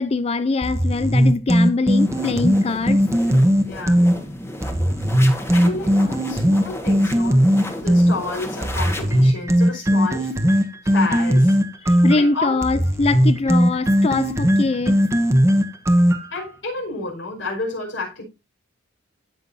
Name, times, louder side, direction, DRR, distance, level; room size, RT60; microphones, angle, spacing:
voice 1, 0.0-3.0 11.8-15.0, left 3 dB, 30° left, 0.4 m, -22 dB
sound 1, 0.6-4.2 4.6-8.2 8.6-16.4, equal, 15° right, 1.1 m, -18 dB
sound 2, 2.0-9.3, left 1 dB, 15° left, 1.5 m, -33 dB
voice 2, 3.6-4.0 5.5-7.5 7.7-11.6 12.2-12.8 13.4-13.6 16.3-18.2, left 3 dB, 70° left, 5.4 m, -30 dB
18.0 x 6.0 x 2.7 m
head